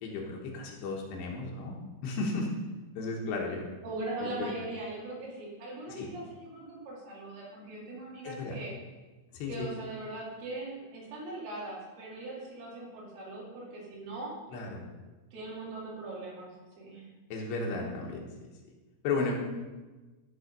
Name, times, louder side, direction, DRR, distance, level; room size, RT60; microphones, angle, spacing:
voice 1, 0.0-2.5 3.0-3.6 4.2-4.5 6.0-6.1 8.2-8.6 9.3-9.7 14.5-14.8 17.3-18.2 19.0-19.3, left 3 dB, 80° left, -1 dB, 3.4 m, -34 dB
voice 2, 3.8-8.7 9.5-14.3 15.3-16.5 16.8-17.1, right 2 dB, 65° right, -4 dB, 4.5 m, -40 dB
13.0 x 5.6 x 5.3 m, 1.2 s
omnidirectional pair, 4.9 m